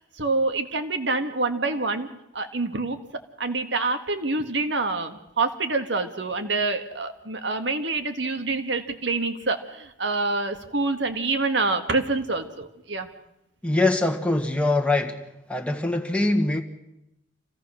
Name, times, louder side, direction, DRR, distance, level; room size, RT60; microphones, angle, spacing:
voice 1, 0.0-2.1 2.3-3.0 3.4-13.1, right 3 dB, 70° right, 7 dB, 1.8 m, -26 dB
voice 2, 13.6-15.2 15.5-16.6, left 2 dB, 5° left, 4 dB, 1.7 m, -23 dB
27.0 x 16.5 x 6.4 m, 0.87 s
head